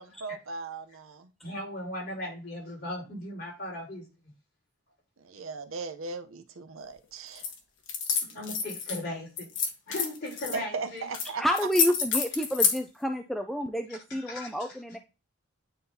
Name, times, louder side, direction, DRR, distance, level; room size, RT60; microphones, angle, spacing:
voice 1, 0.0-1.3 5.2-7.5 10.5-11.4, right 4 dB, 80° right, 0.7 m, -38 dB
voice 2, 1.4-4.1 8.2-9.5 9.9-11.1 14.1-14.7, left 1 dB, 50° left, 4.0 m, -37 dB
sound 1, 7.4-7.5 7.9-9.0 9.4-10.6 11.1-11.3 11.5-12.8, left 6 dB, 65° left, 1.4 m, -28 dB
voice 3, 11.4-15.0, equal, ahead, 0.3 m, -29 dB
9.6 x 3.8 x 2.8 m
head